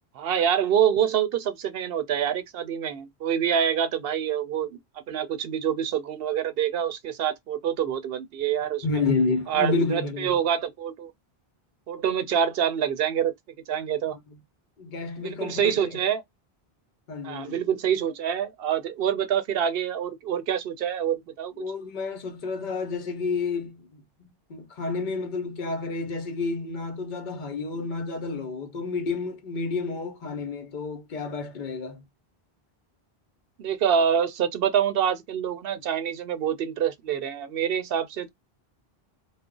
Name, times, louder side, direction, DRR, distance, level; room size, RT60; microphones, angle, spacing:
voice 1, 0.1-4.8 5.1-8.8 9.5-11.1 11.9-13.3 13.7-14.2 15.2-16.2 17.2-21.6 33.6-38.3, right 8 dB, 70° right, 0.7 m, -26 dB
voice 2, 8.8-10.3 14.8-16.0 17.1-17.6 21.6-23.9 24.2-32.0, left 4 dB, 55° left, 0.8 m, -30 dB
2.4 x 2.0 x 3.6 m
omnidirectional pair, 1.0 m